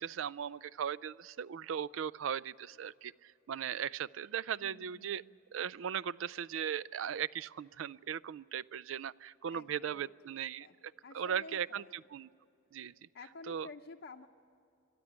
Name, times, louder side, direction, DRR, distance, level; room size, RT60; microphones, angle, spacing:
voice 1, 0.0-5.2 5.5-12.3 12.7-12.9 13.5-13.7, right 8 dB, 80° right, 20 dB, 0.4 m, -38 dB
voice 2, 4.6-5.4 9.5-10.1 10.6-10.8 11.0-12.0 13.1-14.3, left 3 dB, 60° left, 2 dB, 0.7 m, -51 dB
23.0 x 12.5 x 9.5 m, 2.7 s
head